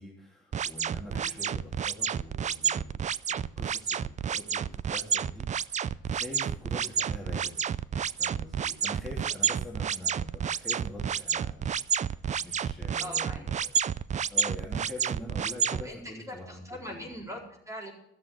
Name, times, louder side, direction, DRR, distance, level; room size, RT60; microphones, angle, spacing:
voice 1, 0.0-7.5 8.1-13.7 14.3-17.1, left 2 dB, ahead, -3 dB, 3.3 m, -45 dB
sound 1, 0.5-15.8, right 8 dB, 35° right, 0.4 m, -30 dB
voice 2, 13.0-13.5 15.7-17.9, equal, 15° right, 0 dB, 4.3 m, -41 dB
14.0 x 7.4 x 8.5 m, 0.75 s
cardioid pair, 90°, 20 cm